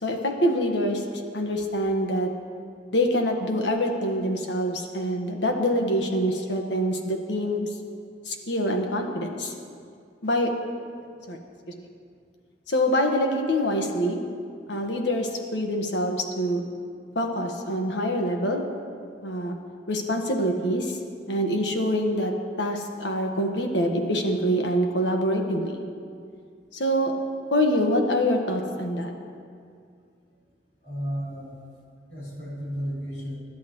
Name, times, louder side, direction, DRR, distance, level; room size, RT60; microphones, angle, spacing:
voice 1, 0.0-2.3 2.9-7.7 8.2-9.5 10.2-10.5 11.3-11.4 11.8-11.9 12.7-14.2 14.7-16.6 17.1-18.6 19.2-19.6 19.9-21.0 21.3-22.3 22.6-25.7 26.7-27.1 27.5-29.1, equal, 85° left, 2 dB, 1.5 m, -25 dB
voice 2, 30.8-31.6 32.1-33.4, equal, 65° left, -5 dB, 4.2 m, -33 dB
25.0 x 11.5 x 3.1 m, 2.3 s
head